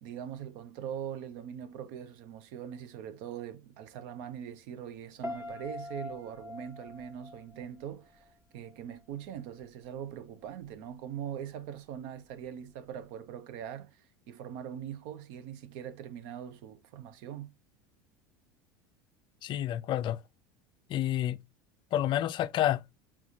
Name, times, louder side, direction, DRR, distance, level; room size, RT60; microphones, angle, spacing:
voice 1, 0.0-17.5, right 9 dB, 65° right, 0.7 m, -42 dB
Piano, 5.2-8.3 8.6-9.0, left 2 dB, 20° right, 1.3 m, -43 dB
voice 2, 19.4-20.2 20.9-21.4 21.9-22.8, left 12 dB, 45° left, 0.4 m, -29 dB
4.8 x 3.6 x 2.6 m
hypercardioid pair, 85°, 12 cm